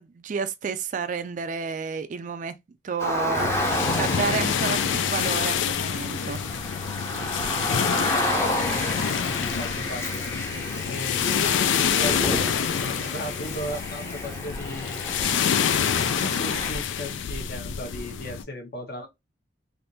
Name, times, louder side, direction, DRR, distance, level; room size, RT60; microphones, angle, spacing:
voice 1, 0.0-2.5 2.8-3.5 3.9-6.4, right 5 dB, 45° right, 0.3 m, -30 dB
Car, 3.0-16.7, left 1 dB, 15° left, 0.7 m, -31 dB
sound 1, 3.3-18.4, left 8 dB, 90° left, 0.4 m, -27 dB
voice 2, 9.2-10.2 10.9-15.0 15.8-19.1, equal, 55° left, 1.1 m, -36 dB
3.4 x 2.5 x 2.7 m
head